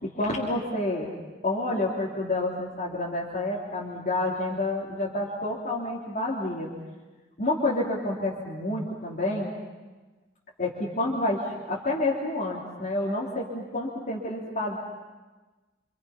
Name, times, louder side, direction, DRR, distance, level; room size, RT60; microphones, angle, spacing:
voice 1, 0.0-1.1 1.4-6.7 7.4-9.5 10.6-14.8, left 2 dB, 45° left, -5 dB, 3.2 m, -29 dB
28.0 x 26.5 x 5.8 m, 1.2 s
head